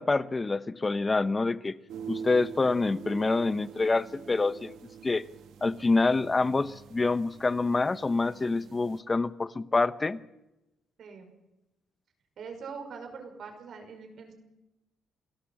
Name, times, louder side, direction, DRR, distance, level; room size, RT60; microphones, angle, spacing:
voice 1, 0.0-1.8 2.1-4.7 5.0-5.2 5.6-10.2, left 3 dB, 25° left, 15 dB, 1.0 m, -26 dB
sound 1, 1.9-9.0, right 7 dB, 80° right, 1.3 m, -45 dB
voice 2, 11.0-11.3 12.4-14.3, right 5 dB, 65° right, 5 dB, 5.6 m, -43 dB
28.0 x 17.5 x 7.4 m, 0.97 s
cardioid pair, 90°, 0 cm